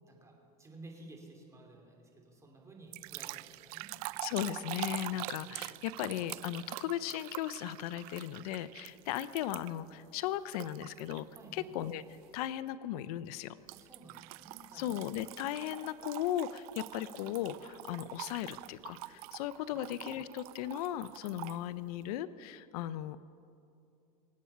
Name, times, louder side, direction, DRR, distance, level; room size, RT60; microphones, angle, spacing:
voice 1, 0.6-3.9 5.1-5.7 11.3-11.7 13.7-14.8, right 2 dB, 15° right, 1 dB, 3.1 m, -54 dB
sound 1, 2.9-9.9 10.5-11.4 11.8-12.1 13.7-21.6, right 20 dB, 70° right, 0.4 m, -45 dB
voice 2, 4.2-11.3 11.5-12.0 12.3-13.6 14.7-23.2, left 12 dB, 75° left, 15 dB, 0.6 m, -37 dB
25.0 x 8.6 x 5.8 m, 2.7 s
supercardioid pair, 125°, 20 cm